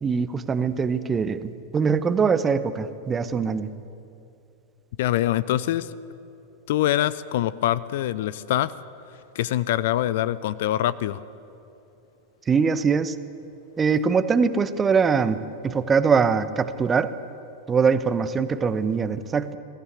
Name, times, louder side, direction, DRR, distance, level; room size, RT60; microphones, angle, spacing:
voice 1, 0.0-3.7 12.5-13.1 13.8-15.4 15.6-17.1 17.7-19.6, right 5 dB, 20° right, 13 dB, 0.9 m, -22 dB
voice 2, 5.0-5.9 6.7-8.7 9.3-11.2, left 13 dB, 55° left, 18 dB, 0.5 m, -24 dB
21.0 x 15.0 x 8.4 m, 2.7 s
figure-of-eight pair, 90°, 0 cm